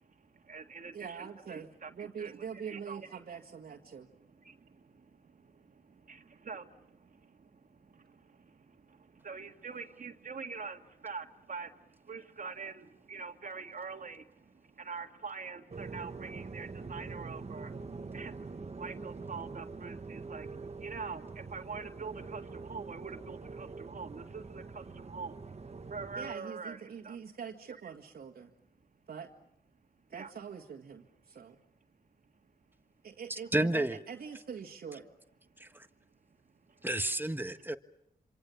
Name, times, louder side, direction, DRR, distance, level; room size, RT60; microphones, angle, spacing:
voice 1, 0.0-3.2 3.9-25.4 25.9-27.2 30.1-30.3 31.3-31.4 36.4-36.9, right 5 dB, 55° right, 2.0 m, -45 dB
voice 2, 0.9-4.1 26.1-28.5 29.1-29.3 30.1-31.6 33.0-35.1, right 7 dB, 75° right, 2.0 m, -44 dB
sound 1, 15.7-26.3, right 4 dB, 40° right, 1.4 m, -44 dB
voice 3, 33.5-34.0 35.6-35.9 36.8-37.8, right 1 dB, 15° right, 1.5 m, -31 dB
27.0 x 26.5 x 7.1 m
cardioid pair, 65°, 16 cm